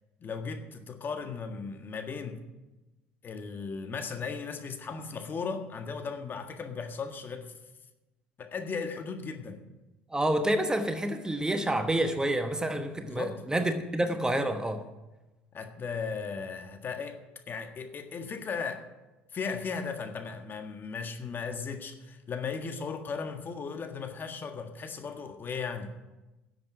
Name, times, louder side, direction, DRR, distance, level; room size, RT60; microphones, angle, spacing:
voice 1, 0.2-2.4 3.2-7.5 8.4-9.6 13.0-13.4 15.5-17.2 17.5-18.8 19.3-25.9, left 5 dB, 40° left, 1.7 m, -36 dB
voice 2, 10.1-14.9, right 1 dB, 15° right, 1.1 m, -28 dB
11.0 x 7.8 x 8.9 m
hypercardioid pair, 65°, 5 cm